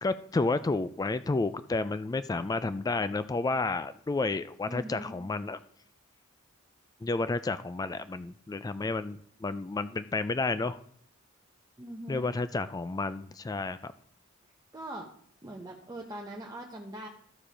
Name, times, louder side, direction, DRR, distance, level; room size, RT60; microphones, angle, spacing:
voice 1, 0.0-5.6 7.0-10.8 12.1-13.9, left 3 dB, 20° left, 13 dB, 0.3 m, -31 dB
voice 2, 4.7-5.2 11.8-12.3 14.7-15.1 15.4-17.1, right 1 dB, 20° right, -1 dB, 0.9 m, -41 dB
13.5 x 4.8 x 5.0 m, 0.62 s
head